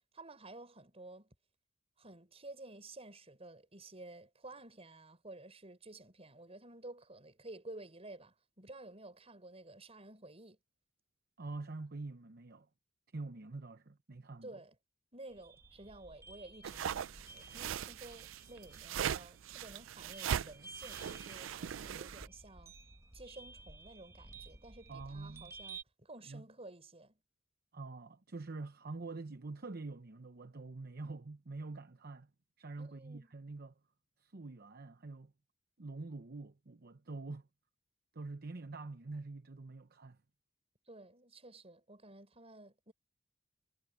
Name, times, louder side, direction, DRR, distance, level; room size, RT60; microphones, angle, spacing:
voice 1, 0.1-1.3 2.0-10.6 14.4-14.8 15.1-22.7 23.1-27.2 32.8-33.3 40.9-42.9, right 2 dB, 30° right, 5.7 m, -52 dB
voice 2, 11.4-12.7 13.1-14.5 24.9-25.5 26.3-26.4 27.7-32.3 32.6-33.7 34.2-35.3 35.8-37.5 38.1-40.2, right 3 dB, 50° right, 0.9 m, -46 dB
sound 1, 15.3-25.8, right 3 dB, 15° right, 1.3 m, -54 dB
sound 2, 16.6-22.3, right 9 dB, 75° right, 0.4 m, -39 dB
head